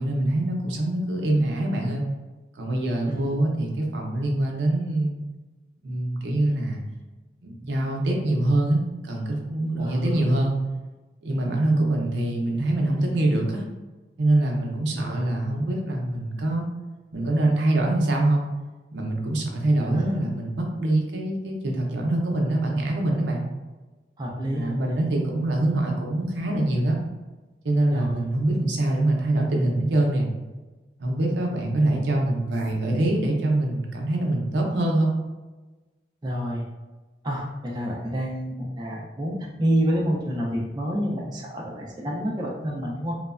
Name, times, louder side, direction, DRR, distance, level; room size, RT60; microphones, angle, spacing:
voice 1, 0.0-2.0 2.6-5.2 5.8-6.8 7.4-10.6 11.2-13.6 14.2-16.6 17.1-18.5 18.9-23.4 24.3-27.0 27.6-30.3 31.0-35.1, right 1 dB, 85° right, 0 dB, 0.5 m, -24 dB
voice 2, 9.8-10.2 15.0-15.4 19.9-20.0 24.2-25.0 27.9-28.1 36.2-36.6 37.2-43.1, equal, 25° right, -2 dB, 0.3 m, -28 dB
3.0 x 2.1 x 2.4 m, 1.2 s
head